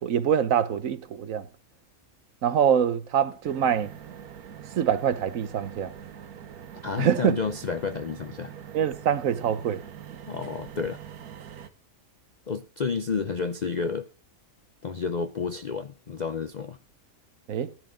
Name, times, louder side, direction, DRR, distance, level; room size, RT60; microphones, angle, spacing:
voice 1, 0.0-1.5 2.4-3.9 4.8-5.9 7.0-7.4 8.7-9.8 17.5-17.7, right 8 dB, 65° right, 1.2 m, -24 dB
sound 1, 3.4-11.7, right 9 dB, 90° right, 1.6 m, -44 dB
voice 2, 6.8-8.5 10.3-11.0 12.5-14.1 14.8-16.8, left 5 dB, 50° left, 0.5 m, -30 dB
15.5 x 11.0 x 3.8 m
omnidirectional pair, 1.5 m